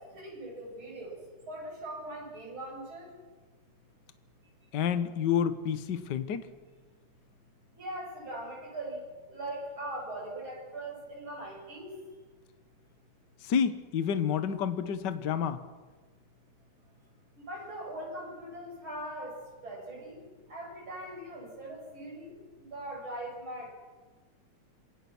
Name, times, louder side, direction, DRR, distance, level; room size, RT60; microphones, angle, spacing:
voice 1, 0.1-1.2 1.5-3.1 7.8-9.0 9.3-12.0 17.4-19.3 19.6-20.2 20.5-22.4 22.7-23.7, right 1 dB, 40° right, -2 dB, 8.2 m, -40 dB
voice 2, 4.7-6.5 13.4-15.6, left 8 dB, 50° left, 11 dB, 1.4 m, -29 dB
27.5 x 23.5 x 6.2 m, 1.3 s
omnidirectional pair, 3.5 m